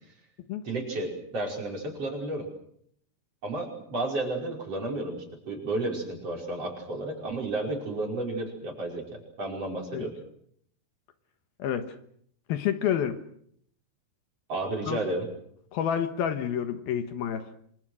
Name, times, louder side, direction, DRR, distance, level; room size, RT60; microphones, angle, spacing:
voice 1, 0.6-2.5 3.4-9.0 9.4-10.1 14.5-15.3, right 2 dB, 35° right, 1 dB, 6.3 m, -32 dB
voice 2, 11.6-11.9 12.5-13.2 14.9-15.0 15.7-17.6, left 9 dB, 70° left, 9 dB, 3.0 m, -29 dB
26.5 x 26.0 x 6.4 m, 0.67 s
omnidirectional pair, 4.7 m